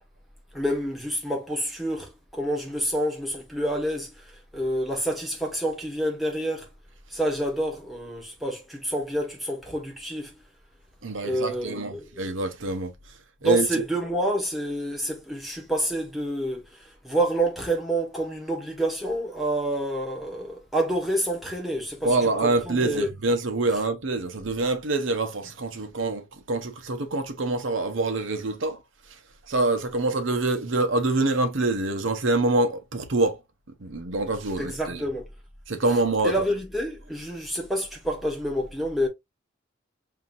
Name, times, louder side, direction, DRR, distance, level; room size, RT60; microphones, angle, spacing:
voice 1, 0.5-6.7 7.1-10.3 11.2-12.1 13.4-23.1 34.6-35.3 36.2-39.1, right 1 dB, ahead, 1.3 m, -28 dB
voice 2, 11.0-12.9 13.4-13.7 22.0-28.8 29.5-33.4 33.8-35.0 35.7-36.3, right 2 dB, 85° right, 0.9 m, -25 dB
5.7 x 2.8 x 2.6 m
head